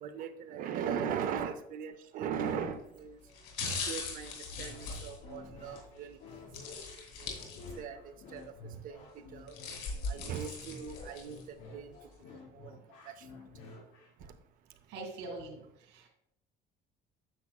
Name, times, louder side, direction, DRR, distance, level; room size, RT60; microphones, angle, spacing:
voice 1, 0.0-3.2 3.6-6.2 7.2-7.3 7.8-8.5 8.8-9.0 9.3-9.5 10.1-11.9 12.5-12.7 13.1-13.2, right 7 dB, 45° right, 10 dB, 0.6 m, -38 dB
sound 1, 2.3-2.6 3.3-5.8 6.5-8.0 8.4-8.5 9.3-11.4 11.9-12.0, left 4 dB, 65° left, 2.6 m, -40 dB
sound 2, 4.5-14.2, left 3 dB, 85° left, 2.8 m, -51 dB
voice 2, 14.9-16.1, right 2 dB, 75° right, 1 dB, 2.5 m, -44 dB
9.7 x 7.1 x 2.3 m, 0.77 s
cardioid pair, 175°, 19 cm